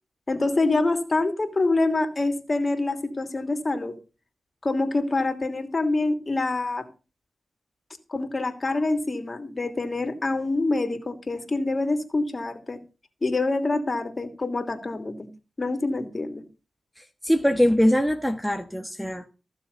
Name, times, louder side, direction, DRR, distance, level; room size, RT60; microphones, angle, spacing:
voice 1, 0.3-4.0 4.6-6.9 8.1-12.8 13.2-15.3 15.6-16.4, left 2 dB, 40° left, 2.9 m, -26 dB
voice 2, 17.0-19.3, equal, ahead, 1.4 m, -22 dB
15.5 x 7.0 x 5.5 m
cardioid pair, 55°, 0 cm